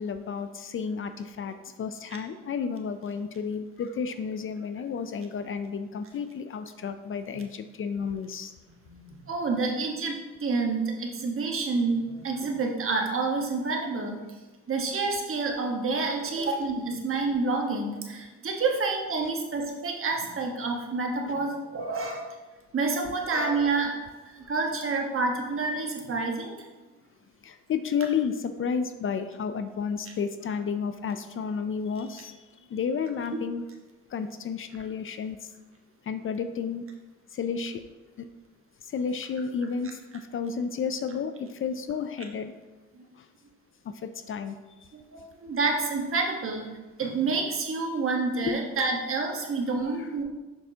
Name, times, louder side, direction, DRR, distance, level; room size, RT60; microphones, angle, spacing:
voice 1, 0.0-8.5 21.3-21.4 27.4-32.3 32.7-33.6 34.1-35.4 36.1-36.8 37.3-37.8 38.2-38.3 38.9-42.6 43.2-43.3 43.9-44.0 44.3-44.5 48.4-48.6 49.9-50.1, left 6 dB, 45° left, 9 dB, 0.4 m, -31 dB
voice 2, 8.8-14.2 14.7-22.3 22.7-26.5 42.9-43.0 44.9-46.7 47.0-50.2, right 3 dB, 45° right, 1 dB, 1.3 m, -28 dB
6.8 x 5.7 x 2.8 m, 1.2 s
cardioid pair, 90°, 30 cm